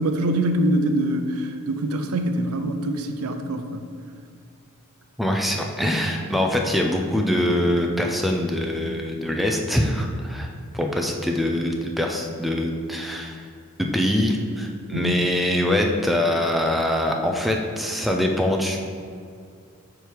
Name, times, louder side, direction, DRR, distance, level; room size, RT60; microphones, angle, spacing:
voice 1, 0.0-3.8 14.9-15.1, right 1 dB, 80° right, 7 dB, 0.5 m, -24 dB
voice 2, 5.2-13.4 13.8-18.9, left 1 dB, ahead, 1 dB, 0.4 m, -23 dB
5.0 x 4.5 x 4.6 m, 2.3 s
head